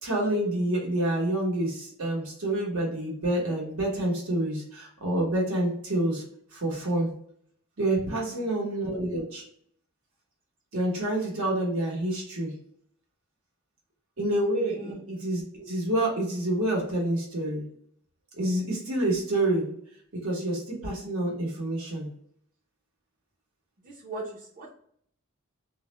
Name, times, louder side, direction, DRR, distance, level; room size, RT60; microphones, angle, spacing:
voice 1, 0.0-6.2 6.6-7.1 7.8-9.4 10.7-12.5 14.2-17.6 18.4-19.7 20.2-22.1, right 1 dB, 80° right, -3 dB, 1.0 m, -28 dB
voice 2, 23.8-24.2 24.6-24.7, right 2 dB, 40° right, -5 dB, 0.6 m, -39 dB
2.3 x 2.0 x 3.0 m, 0.65 s
head